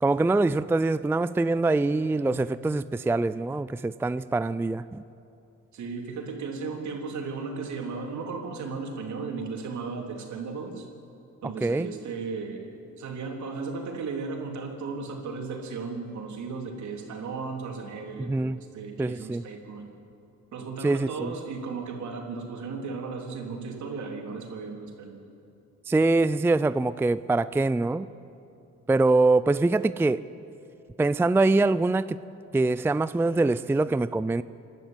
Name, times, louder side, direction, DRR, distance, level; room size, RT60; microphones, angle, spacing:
voice 1, 0.0-5.0 11.6-11.9 18.2-18.6 19.0-19.4 20.8-21.3 25.9-28.1 28.9-30.2 31.0-32.2 32.5-34.4, right 2 dB, 10° right, 0.4 m, -24 dB
voice 2, 2.2-2.5 5.7-10.9 11.4-12.7 13.0-19.9 20.5-25.2, right 4 dB, 70° right, 3.7 m, -35 dB
27.5 x 12.0 x 9.1 m
cardioid pair, 90°, 30 cm